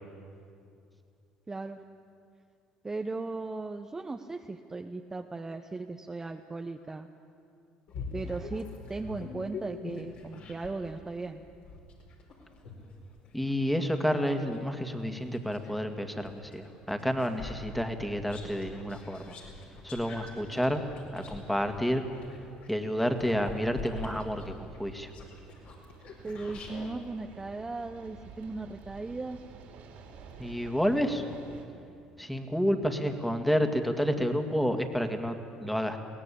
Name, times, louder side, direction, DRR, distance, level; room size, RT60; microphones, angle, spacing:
voice 1, 1.5-1.8 2.8-7.1 8.1-11.4 26.2-29.4, right 3 dB, 20° right, 5 dB, 0.9 m, -37 dB
sound 1, 7.9-10.9 11.4-15.8 16.2-26.9, left 3 dB, 65° left, 4.8 m, -44 dB
voice 2, 13.3-19.4 19.8-20.8 21.1-22.0 22.7-25.1 30.4-31.2 32.2-36.0, equal, 5° left, 6 dB, 2.1 m, -30 dB
sound 2, 20.3-31.7, right 5 dB, 65° right, 3.8 m, -52 dB
22.0 x 17.5 x 8.6 m, 2.5 s
supercardioid pair, 70°, 3 cm